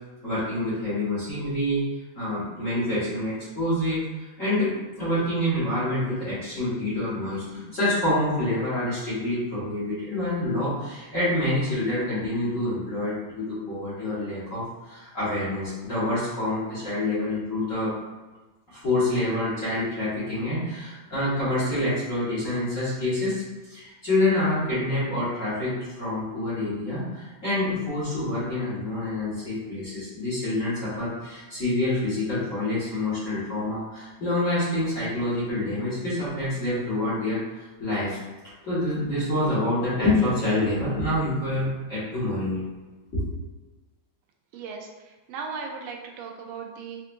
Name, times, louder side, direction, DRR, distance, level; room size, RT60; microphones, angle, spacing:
voice 1, 0.2-17.9 18.7-38.2 38.6-42.7 43.1-43.3, left 1 dB, 40° left, -13 dB, 1.7 m, -27 dB
voice 2, 44.5-44.9 45.3-47.0, right 5 dB, 85° right, 1 dB, 1.4 m, -36 dB
4.4 x 2.7 x 2.6 m, 1.2 s
omnidirectional pair, 2.2 m